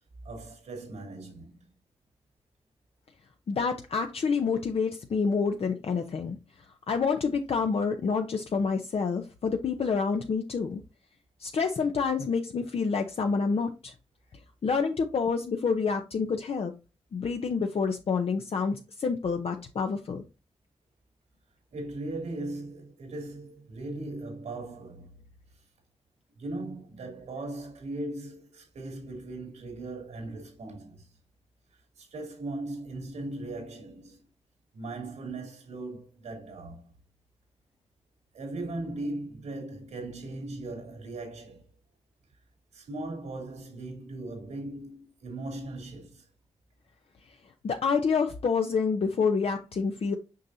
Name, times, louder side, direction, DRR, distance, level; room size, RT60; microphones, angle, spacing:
voice 1, 0.2-1.6 21.7-25.2 26.4-31.1 31.7-34.2 34.7-36.9 38.3-41.6 42.7-46.3, right 2 dB, 90° right, 2.8 m, -38 dB
voice 2, 3.5-6.4 6.9-10.8 11.4-13.9 14.6-16.7 17.1-20.2 47.6-50.2, left 5 dB, 60° left, 0.7 m, -28 dB
6.4 x 5.6 x 2.7 m
cardioid pair, 80°, 11 cm